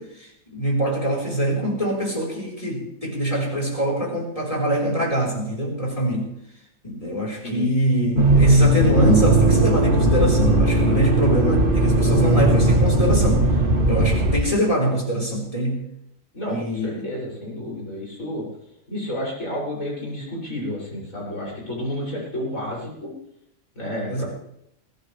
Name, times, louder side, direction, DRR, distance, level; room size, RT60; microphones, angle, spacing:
voice 1, 0.0-6.3 6.8-13.5 13.9-15.8 16.5-17.1 24.1-24.2, equal, 25° left, -2 dB, 4.8 m, -23 dB
Accelerating revving vroom, 8.2-14.4, right 1 dB, 40° right, 1.7 m, -18 dB
voice 2, 16.3-18.4 18.9-23.1 23.8-24.2, left 1 dB, 65° left, -5 dB, 7.5 m, -31 dB
22.5 x 16.5 x 3.4 m, 0.77 s
omnidirectional pair, 1.5 m